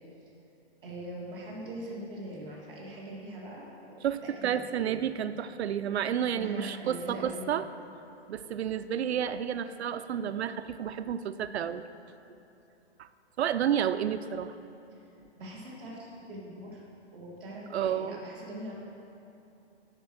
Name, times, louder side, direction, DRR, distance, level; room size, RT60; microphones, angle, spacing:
voice 1, 0.8-5.1 6.3-7.5 14.9-15.0 15.3-16.8 17.1-18.7, right 1 dB, 5° left, -19 dB, 0.3 m, -42 dB
voice 2, 4.0-7.6 8.3-11.9 13.0-13.1 13.4-14.5 17.7-18.2, right 9 dB, 75° right, 11 dB, 0.5 m, -31 dB
11.0 x 4.4 x 6.1 m, 2.9 s
hypercardioid pair, 170°, 33 cm